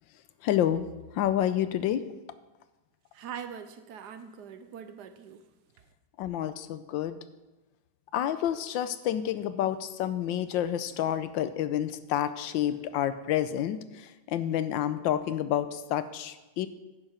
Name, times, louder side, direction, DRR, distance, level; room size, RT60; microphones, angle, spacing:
voice 1, 0.4-0.9 1.1-2.0 6.2-7.2 8.1-16.7, left 11 dB, 90° left, 12 dB, 1.4 m, -29 dB
voice 2, 3.1-5.4, right 8 dB, 70° right, 10 dB, 1.2 m, -42 dB
10.5 x 9.9 x 4.4 m, 1.1 s
omnidirectional pair, 2.0 m